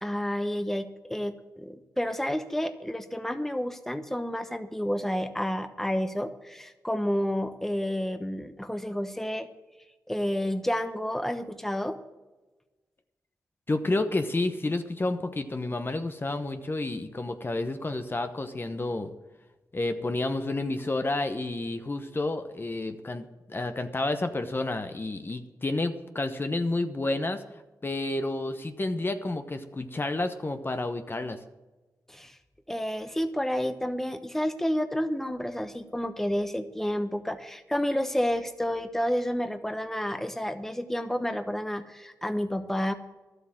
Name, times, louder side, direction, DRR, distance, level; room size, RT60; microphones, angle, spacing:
voice 1, 0.0-9.5 10.1-12.0 32.1-32.4 32.7-42.9, equal, 5° left, 9 dB, 1.0 m, -30 dB
voice 2, 13.7-19.1 19.7-27.4 27.8-31.4, left 2 dB, 35° left, 8 dB, 1.0 m, -30 dB
12.0 x 8.0 x 7.5 m, 1.1 s
cardioid pair, 55°, 7 cm